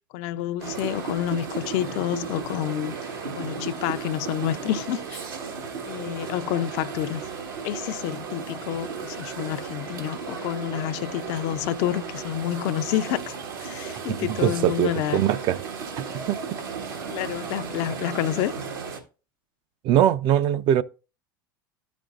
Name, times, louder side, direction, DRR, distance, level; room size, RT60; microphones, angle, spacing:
voice 1, 0.1-2.9 3.4-5.2 5.9-7.2 7.6-13.2 13.6-15.2 17.1-18.5, left 12 dB, 60° left, 0.5 m, -28 dB
sound 1, 0.6-19.0, right 5 dB, 85° right, 1.5 m, -35 dB
voice 2, 14.3-15.6 16.0-16.4 19.8-20.8, right 11 dB, 45° right, 0.4 m, -22 dB
12.5 x 5.2 x 2.4 m
hypercardioid pair, 90°, 11 cm